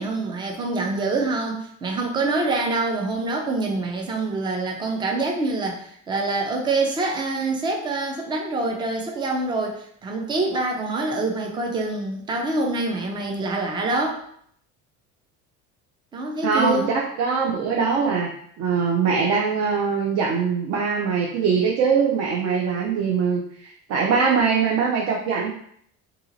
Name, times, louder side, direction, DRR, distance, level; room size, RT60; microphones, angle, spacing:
voice 1, 0.0-14.2 16.1-17.0, right 2 dB, 15° right, 1 dB, 0.4 m, -25 dB
voice 2, 16.4-18.3 18.6-25.5, right 5 dB, 55° right, -1 dB, 0.6 m, -22 dB
2.8 x 2.8 x 3.9 m, 0.65 s
cardioid pair, 175°, 32 cm